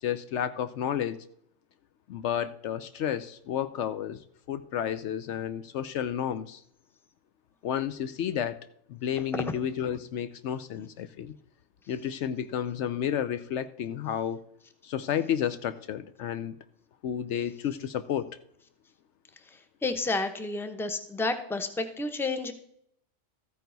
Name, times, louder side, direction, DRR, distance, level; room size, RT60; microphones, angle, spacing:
voice 1, 0.0-1.2 2.1-4.2 4.5-6.6 7.6-11.3 11.9-14.4 14.8-16.6 17.0-18.4, left 9 dB, 70° left, 13 dB, 0.9 m, -31 dB
voice 2, 19.8-22.5, left 3 dB, ahead, 8 dB, 0.8 m, -30 dB
14.0 x 9.1 x 4.0 m, 0.70 s
omnidirectional pair, 1.3 m